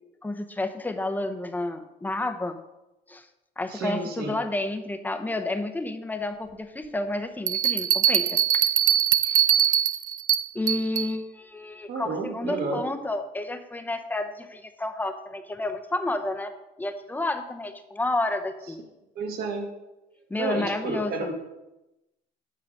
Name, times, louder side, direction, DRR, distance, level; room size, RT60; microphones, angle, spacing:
voice 1, 0.2-2.6 3.1-3.3 3.6-8.4 9.2-9.6 10.5-16.5 16.8-18.8 20.3-21.3, left 2 dB, 10° left, 7 dB, 0.8 m, -30 dB
voice 2, 3.7-4.4 11.9-12.8 19.2-19.7 20.4-21.3, right 3 dB, 65° right, 2 dB, 1.9 m, -31 dB
sound 1, 7.5-11.1, right 10 dB, 50° right, 0.4 m, -22 dB
8.7 x 3.9 x 6.5 m, 0.98 s
cardioid pair, 110°, 17 cm